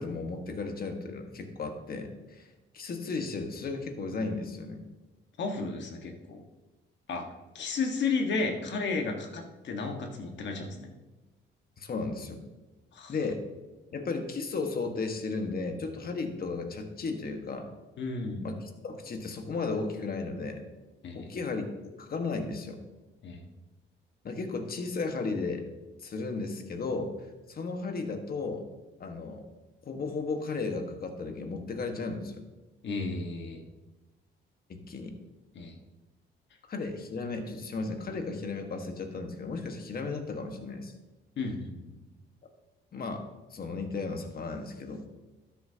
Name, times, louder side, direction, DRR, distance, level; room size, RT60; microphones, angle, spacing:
voice 1, 0.0-2.5 2.7-4.8 11.8-12.4 13.1-13.4 13.9-17.7 18.4-20.7 21.1-21.6 22.0-22.8 24.2-25.6 26.0-27.1 27.5-28.7 29.0-29.5 29.8-32.4 34.7-35.2 36.7-40.9 42.4-42.5 42.9-45.0, left 3 dB, 50° left, 5 dB, 1.6 m, -34 dB
voice 2, 5.4-6.4 7.1-7.3 7.5-10.9 12.9-13.1 18.0-18.5 21.0-21.3 23.2-23.4 32.8-33.6 35.5-35.7 41.4-42.0, left 4 dB, 65° left, 3 dB, 1.7 m, -33 dB
12.5 x 10.5 x 2.9 m, 1.1 s
cardioid pair, 90°, 20 cm